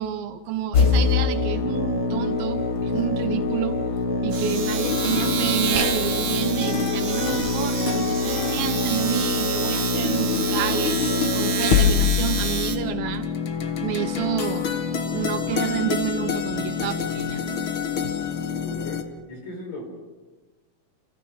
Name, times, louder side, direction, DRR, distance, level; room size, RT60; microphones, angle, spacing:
voice 1, 0.0-3.8 4.2-13.3 13.8-14.7 15.1-17.4 18.0-18.1, right 11 dB, 75° right, 9 dB, 2.7 m, -29 dB
sound 1, 0.7-19.0, left 5 dB, 80° left, 1.1 m, -25 dB
Domestic sounds home sounds, 1.0-1.2 1.5-12.8, right 6 dB, 55° right, 3.0 m, -30 dB
voice 2, 18.6-19.8, left 1 dB, 45° left, 1 dB, 5.6 m, -37 dB
30.0 x 15.0 x 6.5 m, 1.3 s
omnidirectional pair, 4.4 m